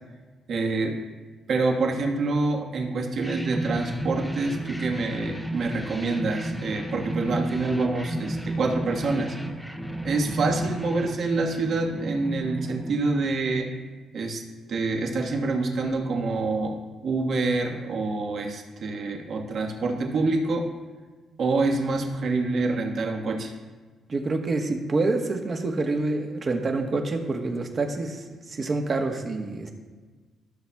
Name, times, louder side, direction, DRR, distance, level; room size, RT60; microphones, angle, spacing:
voice 1, 0.5-1.0 1.5-9.4 10.0-13.7 14.1-20.7 21.4-23.5, right 3 dB, 60° right, 1 dB, 1.4 m, -26 dB
sound 1, 3.2-13.7, right 1 dB, ahead, 0.6 m, -33 dB
voice 2, 24.1-29.7, right 3 dB, 40° right, 3 dB, 1.2 m, -27 dB
14.0 x 6.8 x 2.3 m, 1.4 s
cardioid pair, 90°, 0 cm